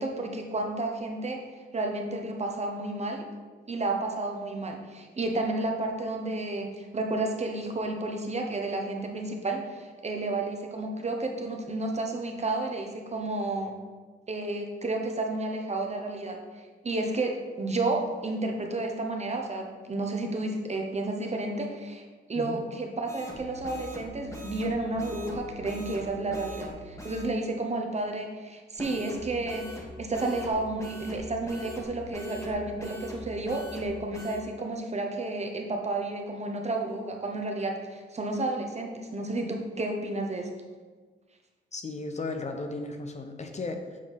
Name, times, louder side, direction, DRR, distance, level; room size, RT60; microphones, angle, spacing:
voice 1, 0.0-1.4 1.7-3.3 3.7-13.8 14.3-22.0 22.3-40.5, right 2 dB, 35° right, 2 dB, 0.9 m, -31 dB
voice 2, 22.3-22.7 41.7-44.0, left 3 dB, 35° left, 5 dB, 0.7 m, -35 dB
sound 1, 23.1-27.3 28.8-34.4, equal, 15° left, 1.4 m, -43 dB
7.2 x 4.4 x 4.0 m, 1.4 s
cardioid pair, 85°, 20 cm